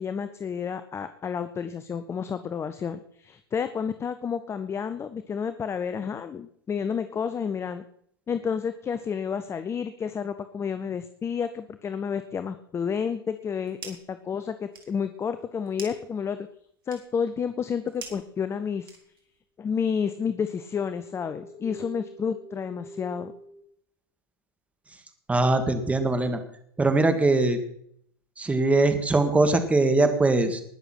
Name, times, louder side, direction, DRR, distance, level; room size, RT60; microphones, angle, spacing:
voice 1, 0.0-7.8 8.3-16.5 16.9-19.0 19.6-23.3, left 6 dB, 20° left, 11 dB, 0.8 m, -30 dB
sound 1, 13.3-14.2 14.5-19.4, right 5 dB, 70° right, 3.2 m, -47 dB
sound 2, 20.3-23.6, right 1 dB, 45° left, 7.1 m, -46 dB
voice 2, 25.3-26.4 26.8-27.6 28.4-30.6, right 2 dB, 10° right, 7 dB, 2.0 m, -21 dB
19.5 x 7.0 x 6.0 m, 0.68 s
figure-of-eight pair, 95°, 12 cm